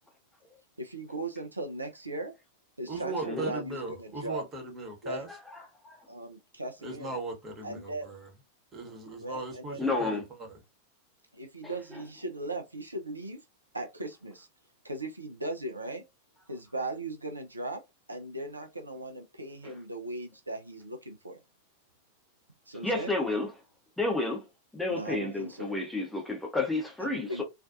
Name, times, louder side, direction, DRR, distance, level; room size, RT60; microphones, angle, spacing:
voice 1, 0.8-2.3 2.8-4.4 5.0-5.2 6.1-7.2 7.6-8.1 9.2-10.1 11.3-13.4 13.7-14.5 14.8-16.0 16.5-17.8 18.1-21.4 22.7-23.1 24.9-25.7 27.0-27.4, right 2 dB, 80° right, 0.4 m, -38 dB
voice 2, 2.9-5.3 6.8-8.3 8.7-10.6, right 2 dB, 20° right, 1.0 m, -38 dB
voice 3, 9.8-10.2 11.6-11.7 19.6-19.7 22.8-23.5 24.0-24.4 24.7-27.4, left 2 dB, 5° left, 0.7 m, -30 dB
2.4 x 2.2 x 2.5 m
figure-of-eight pair, 90°, 0 cm